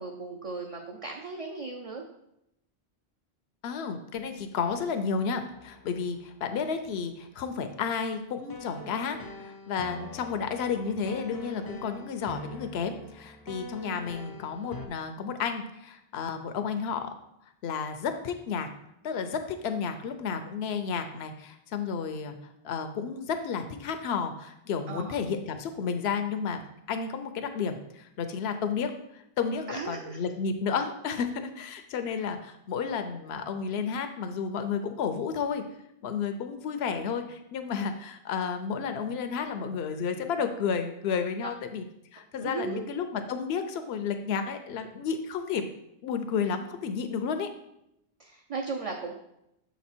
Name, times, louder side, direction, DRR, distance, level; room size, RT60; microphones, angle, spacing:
voice 1, 0.0-2.0 24.9-25.1 29.7-30.2 42.4-42.8 48.2-49.1, right 4 dB, 40° right, 1 dB, 0.6 m, -36 dB
voice 2, 3.6-17.1 17.6-18.7 19.0-22.3 22.6-26.6 26.9-35.6 36.0-41.8 42.1-45.6 46.0-47.5, left 6 dB, 80° left, 7 dB, 0.9 m, -32 dB
sound 1, 5.5-14.9, left 1 dB, 25° left, 0.5 m, -45 dB
6.6 x 4.1 x 4.3 m, 0.81 s
omnidirectional pair, 1.1 m